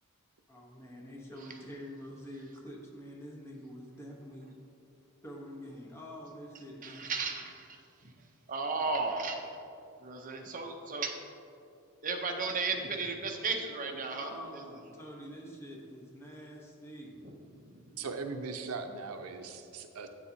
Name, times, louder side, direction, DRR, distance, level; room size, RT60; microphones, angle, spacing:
voice 1, 0.5-4.6 5.2-7.1 14.1-17.1, equal, 10° left, -2 dB, 0.9 m, -46 dB
voice 2, 6.8-8.1 8.5-9.6 10.0-11.2 12.0-14.6 17.2-17.3 17.7-17.9, right 4 dB, 40° right, 3 dB, 0.6 m, -35 dB
voice 3, 18.0-20.1, right 4 dB, 80° right, 6 dB, 0.5 m, -39 dB
8.7 x 7.1 x 2.7 m, 2.6 s
head